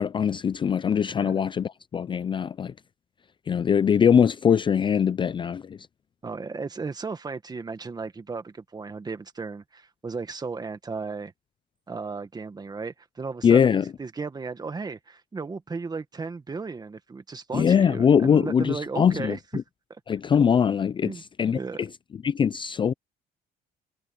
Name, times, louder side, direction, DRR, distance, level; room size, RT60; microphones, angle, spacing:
voice 1, 0.0-2.7 3.5-5.8 13.4-13.8 17.5-19.4 20.1-21.1 21.4-21.9 22.2-22.9, left 7 dB, 30° left, 0.4 m, -22 dB
voice 2, 6.2-11.3 11.9-19.4 19.9-20.0 21.0-21.2 21.5-21.8, right 4 dB, 25° right, 1.7 m, -35 dB
cardioid pair, 110°, 17 cm